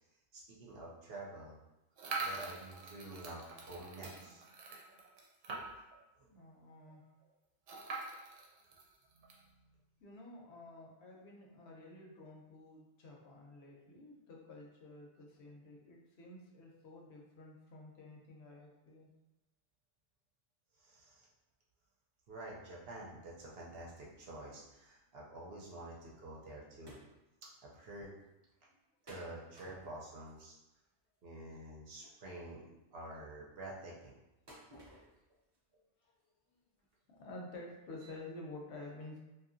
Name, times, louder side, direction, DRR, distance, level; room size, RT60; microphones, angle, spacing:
voice 1, 0.3-1.5 2.2-4.4 6.2-6.3 9.2-9.3 20.8-21.3 22.3-27.0 27.4-28.1 29.0-30.5 31.2-32.6 32.9-34.1 38.0-38.1, right 1 dB, 65° right, -4 dB, 0.8 m, -48 dB
sound 1, 2.0-6.0 6.4-6.5 6.7-6.8 7.7-9.4, right 3 dB, 90° right, 0.9 m, -44 dB
voice 2, 6.3-7.0 10.0-19.1 36.0-36.1 37.1-39.2, left 2 dB, 70° left, -1 dB, 0.8 m, -51 dB
sound 2, 26.9-27.1 27.5-27.6 27.8-27.9 29.1-30.4 32.0-32.1 34.5-35.2 35.5-35.6 36.2-36.3 36.8-36.9 37.2-37.3, equal, 35° right, 0.4 m, -56 dB
2.8 x 2.4 x 2.5 m, 0.97 s
omnidirectional pair, 1.2 m